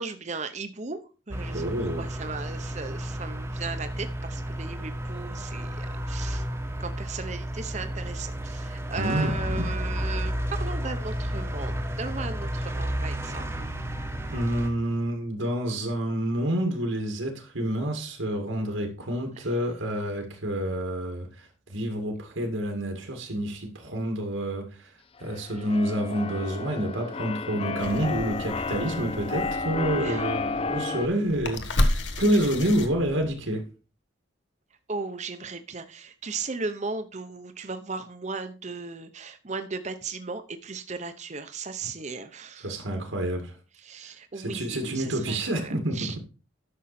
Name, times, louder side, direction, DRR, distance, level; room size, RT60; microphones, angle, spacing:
voice 1, 0.0-1.6 2.0-6.4 6.8-13.7 19.4-19.5 25.6-25.7 30.0-30.6 34.9-42.7 43.8-46.2, right 4 dB, 35° right, 0.8 m, -36 dB
sound 1, 1.3-14.7, equal, 15° right, 1.1 m, -32 dB
voice 2, 1.5-2.1 9.0-9.7 14.3-24.9 25.2-33.7 42.6-43.5 44.4-46.2, right 1 dB, 90° right, 2.3 m, -28 dB
Keyboard (musical), 25.2-31.1, left 4 dB, 30° left, 0.5 m, -32 dB
sound 2, 27.8-33.5, left 1 dB, 70° left, 1.5 m, -32 dB
11.5 x 6.4 x 4.3 m
head